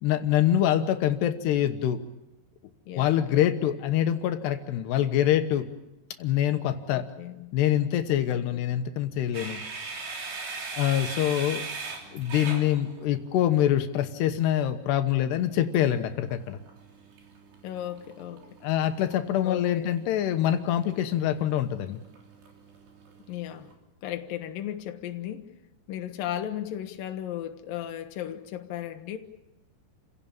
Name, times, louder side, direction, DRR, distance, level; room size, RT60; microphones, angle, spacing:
voice 1, 0.0-2.0 3.0-5.7 6.2-7.1 7.5-9.6 10.8-11.6 12.1-16.6 18.6-22.0, left 11 dB, 85° left, 3.2 m, -25 dB
voice 2, 2.9-3.5 6.9-7.5 8.3-8.4 17.6-18.4 19.4-19.9 23.3-23.7 24.0-25.5 25.9-29.2, left 11 dB, 65° left, 2.9 m, -35 dB
sound 1, 9.3-13.4 15.7-23.7, right 4 dB, 85° right, 5.7 m, -41 dB
29.0 x 17.0 x 8.8 m
omnidirectional pair, 4.8 m